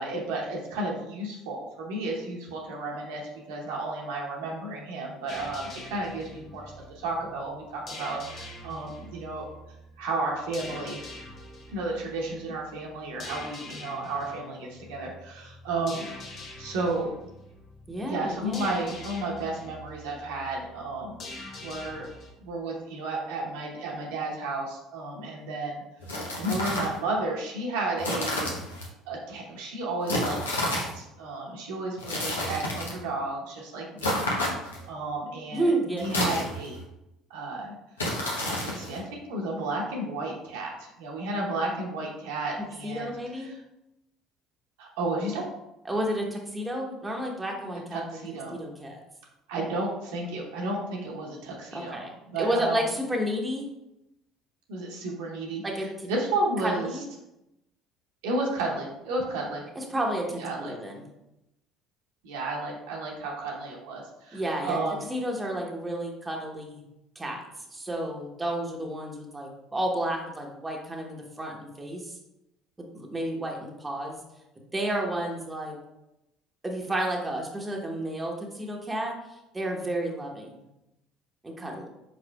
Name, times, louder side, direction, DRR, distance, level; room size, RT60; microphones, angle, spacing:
voice 1, 0.0-9.5 10.0-11.0 11.7-16.0 16.6-17.1 18.1-21.2 21.6-25.8 26.4-28.6 29.1-34.2 34.8-35.6 35.9-36.8 37.3-37.7 38.4-43.6 44.8-45.4 47.9-48.6 49.5-52.8 54.7-56.9 58.2-59.6 60.4-60.7 62.2-65.1, right 2 dB, 75° right, -2 dB, 0.9 m, -32 dB
sound 1, 5.3-22.3, left 2 dB, 50° left, 0.9 m, -45 dB
voice 2, 17.9-18.8 35.5-36.0 42.8-43.5 45.8-48.0 48.5-49.0 51.7-52.1 52.4-53.7 55.6-56.1 56.6-57.0 59.7-61.1 64.3-64.8 65.1-66.8 67.1-67.4 67.7-72.1 72.9-74.2 74.7-75.8 76.6-79.1 79.5-80.6 81.4-81.9, right 1 dB, 15° right, 0 dB, 1.0 m, -31 dB
sound 2, 26.0-27.0 28.0-28.9 30.1-31.0 32.0-33.0 34.0-34.9 36.0-36.8 38.0-39.0, left 1 dB, 90° left, 0.8 m, -30 dB
4.9 x 4.1 x 2.3 m, 0.90 s
hypercardioid pair, 60°, 0 cm